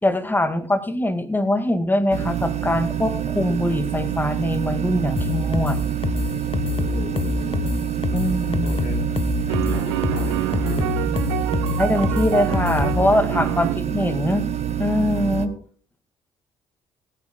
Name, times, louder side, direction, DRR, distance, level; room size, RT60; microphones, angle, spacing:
voice 1, 0.0-5.8 8.1-8.9 11.8-14.5 14.8-15.5, left 1 dB, 15° left, 10 dB, 2.0 m, -22 dB
sound 1, 2.1-15.5, right 10 dB, 50° right, 1.9 m, -26 dB
sound 2, 5.2-13.1, left 7 dB, 40° left, 1.4 m, -26 dB
voice 2, 6.6-7.7 8.6-9.0 9.5-11.0 13.3-13.7 15.4-15.6, left 3 dB, 75° left, 6 dB, 4.3 m, -38 dB
sound 3, 8.7-8.8 9.5-13.8, right 15 dB, 80° right, 0.8 m, -28 dB
22.5 x 11.0 x 2.3 m, 0.42 s
hypercardioid pair, 45°, 15 cm